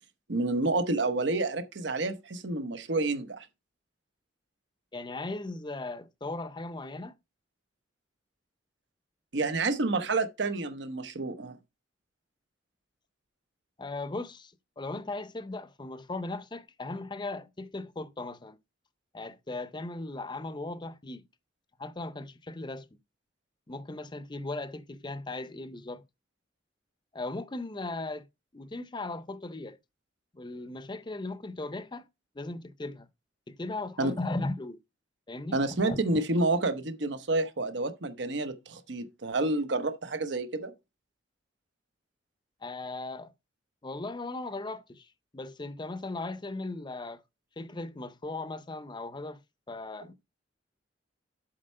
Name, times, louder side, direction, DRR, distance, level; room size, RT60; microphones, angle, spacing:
voice 1, 0.3-3.5 9.3-11.5 34.0-34.2 35.5-40.7, right 2 dB, 65° right, 0.9 m, -29 dB
voice 2, 4.9-7.1 13.8-18.6 19.1-21.2 21.8-22.9 23.7-26.0 27.1-28.3 28.5-29.8 30.3-32.1 32.3-33.1 33.5-34.8 35.3-36.0 42.6-43.3 43.8-45.1 45.3-47.2 47.6-49.4 49.7-50.1, left 2 dB, 25° left, 0.6 m, -37 dB
7.7 x 4.4 x 5.4 m
head